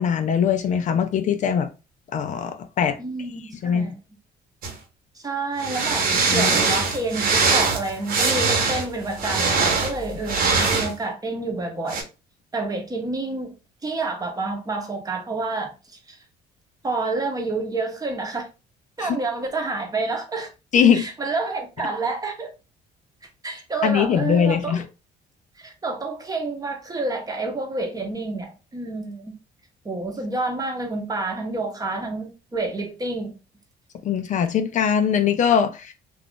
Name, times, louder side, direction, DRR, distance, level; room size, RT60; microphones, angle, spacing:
voice 1, 0.0-1.7 2.1-3.0 3.6-3.9 6.3-6.5 19.0-19.2 20.7-21.1 23.8-24.8 34.0-35.9, left 7 dB, 45° left, 0.4 m, -21 dB
voice 2, 3.0-4.0 5.2-6.1 6.3-12.1 12.5-13.5 13.8-16.2 16.8-18.5 19.0-20.5 20.9-22.5 23.4-24.8 25.6-29.4 29.8-33.4, right 3 dB, 20° right, 0.8 m, -29 dB
sound 1, 4.6-4.7 5.6-10.9 11.9-12.0, right 4 dB, 60° right, 1.0 m, -22 dB
2.4 x 2.4 x 3.6 m
cardioid pair, 110°, 17 cm